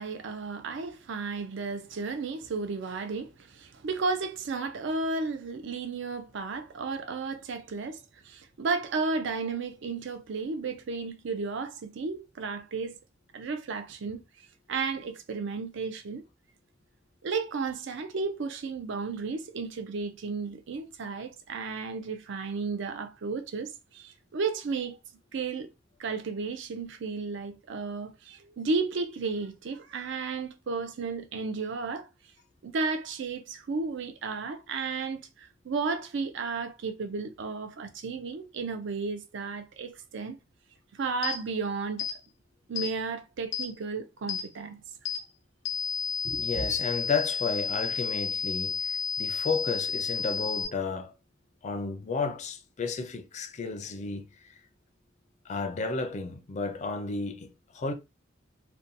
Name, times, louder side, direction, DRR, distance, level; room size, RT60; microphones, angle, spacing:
voice 1, 0.0-13.0 13.3-14.2 14.7-16.2 17.2-25.0 25.3-25.7 26.0-32.1 32.6-40.4 40.9-42.1 42.7-44.8 46.2-46.7, right 4 dB, 65° right, 0.4 m, -33 dB
sound 1, 41.2-41.4 42.0-42.2 42.8-42.9 43.5-43.7 44.3-44.4 45.1-45.2 45.7-50.7, left 6 dB, 90° left, 0.6 m, -31 dB
voice 2, 46.4-51.1 51.6-54.2 55.5-57.9, left 4 dB, 35° left, 0.4 m, -32 dB
2.6 x 2.1 x 2.6 m
head